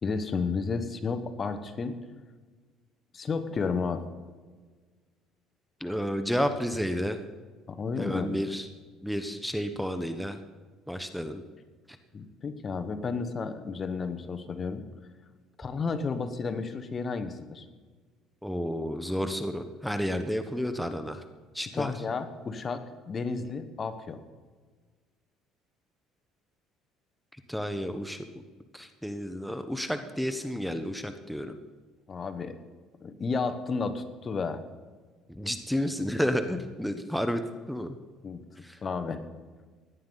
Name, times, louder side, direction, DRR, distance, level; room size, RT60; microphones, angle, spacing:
voice 1, 0.0-2.0 3.1-4.1 7.7-8.5 12.1-14.8 15.6-17.6 21.6-24.2 32.1-32.6 33.0-34.6 36.5-36.6 38.2-38.4 38.8-39.2, left 4 dB, 35° left, 10 dB, 1.2 m, -32 dB
voice 2, 5.8-7.2 8.0-8.7 9.0-10.4 10.9-11.4 18.4-21.2 21.5-21.9 27.5-28.2 28.7-31.6 35.3-37.4 37.7-38.0 38.6-38.8, equal, ahead, 8 dB, 0.9 m, -31 dB
17.0 x 11.0 x 4.0 m, 1.4 s
supercardioid pair, 85°, 0 cm